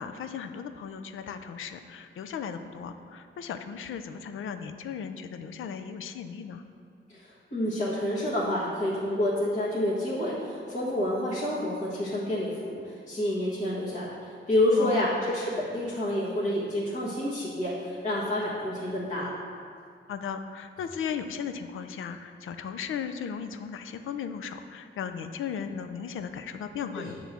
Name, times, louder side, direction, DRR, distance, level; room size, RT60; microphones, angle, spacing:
voice 1, 0.0-6.6 14.8-15.2 20.1-27.1, left 7 dB, 85° left, 8 dB, 0.5 m, -36 dB
voice 2, 7.5-12.8 13.1-14.1 14.5-19.3 26.9-27.1, left 1 dB, 35° left, -9 dB, 1.4 m, -28 dB
9.1 x 3.1 x 6.6 m, 2.2 s
wide cardioid pair, 115°, 20 cm